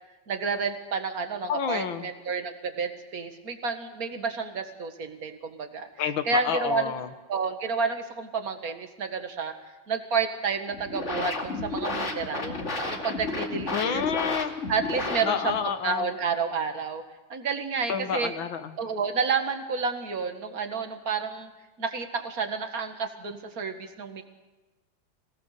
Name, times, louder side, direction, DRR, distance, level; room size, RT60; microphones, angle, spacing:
voice 1, 0.3-5.9 6.2-7.0 7.3-9.5 9.9-12.6 12.9-14.0 14.7-17.0 17.3-18.3 18.8-21.5 21.8-24.2, right 5 dB, 50° right, 6 dB, 2.2 m, -30 dB
voice 2, 1.5-2.1 6.0-7.1 13.7-14.5 15.2-16.1 17.9-18.7, left 7 dB, 85° left, 9 dB, 2.0 m, -29 dB
sound 1, 10.7-15.7, left 2 dB, 35° left, 2.7 m, -32 dB
26.0 x 18.0 x 6.7 m, 1.1 s
omnidirectional pair, 2.1 m